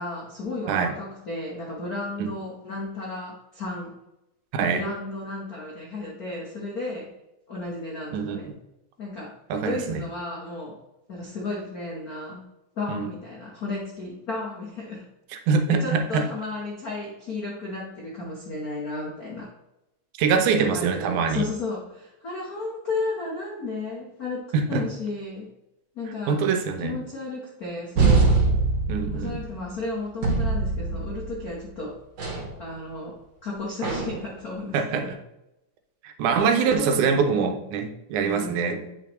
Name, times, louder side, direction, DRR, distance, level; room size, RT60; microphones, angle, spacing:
voice 1, 0.0-4.0 4.7-7.1 7.5-8.5 9.0-9.3 9.6-10.8 11.1-12.5 12.8-15.1 15.7-19.5 20.3-25.5 25.9-26.4 26.8-28.4 29.1-32.0 32.6-35.2 36.4-37.7 38.2-39.0, left 2 dB, 55° left, -3 dB, 1.0 m, -33 dB
voice 2, 9.5-10.0 12.9-13.1 15.5-16.2 20.2-21.4 24.5-24.8 26.3-27.0 28.9-29.4 34.7-35.0 36.0-38.8, right 5 dB, 80° right, 6 dB, 2.2 m, -24 dB
sound 1, 28.0-29.6 30.2-31.5 32.2-32.5 33.8-34.3, right 3 dB, 60° right, 2.7 m, -23 dB
8.8 x 5.6 x 3.0 m, 0.90 s
omnidirectional pair, 3.5 m